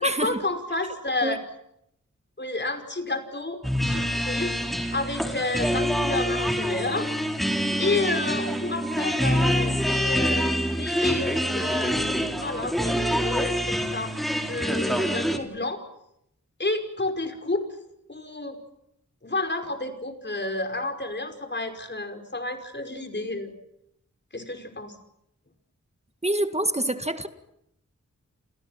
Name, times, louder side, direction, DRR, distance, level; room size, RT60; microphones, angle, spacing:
voice 1, 0.0-1.4 2.4-7.1 7.8-15.8 16.6-17.6 18.1-18.6 19.2-23.5 24.3-24.9, left 2 dB, 35° left, 7 dB, 5.4 m, -30 dB
sound 1, 3.6-15.4, equal, ahead, 4.3 m, -26 dB
voice 2, 26.2-27.3, right 1 dB, 20° right, 10 dB, 1.9 m, -26 dB
30.0 x 28.0 x 6.0 m, 0.78 s
wide cardioid pair, 85°, 30 cm